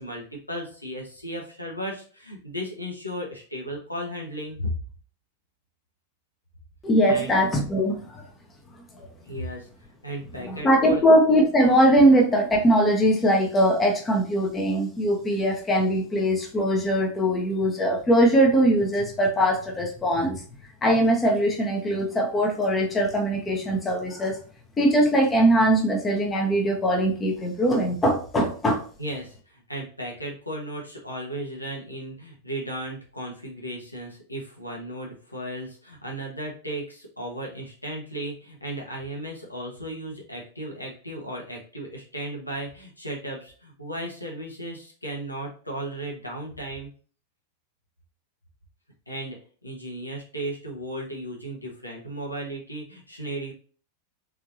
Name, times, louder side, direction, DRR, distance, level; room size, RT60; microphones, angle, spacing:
voice 1, 0.0-4.7 7.0-7.3 9.2-9.7 10.0-11.0 29.0-46.9 49.1-53.5, right 1 dB, 85° left, -1 dB, 1.2 m, -35 dB
voice 2, 6.8-8.2 9.0-9.1 10.5-20.4 20.8-24.4 24.8-28.8, equal, 15° left, 1 dB, 1.1 m, -21 dB
4.5 x 3.7 x 2.6 m, 0.41 s
figure-of-eight pair, 90°, 0 cm